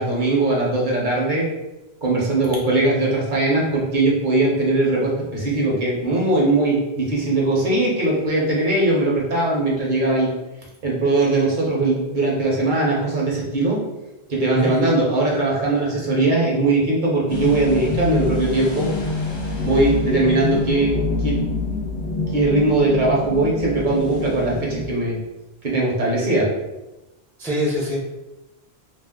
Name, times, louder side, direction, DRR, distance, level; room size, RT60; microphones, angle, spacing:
voice 1, 0.0-1.5 2.0-10.3 10.8-13.8 14.3-18.9 19.6-20.9 21.2-21.4 22.3-25.2 25.6-26.5, right 2 dB, 50° right, -4 dB, 0.8 m, -20 dB
sound 1, 17.3-25.2, left 3 dB, 55° left, 0.8 m, -26 dB
voice 2, 27.4-28.1, equal, 5° left, -5 dB, 0.4 m, -24 dB
2.6 x 2.0 x 3.4 m, 0.98 s
omnidirectional pair, 1.1 m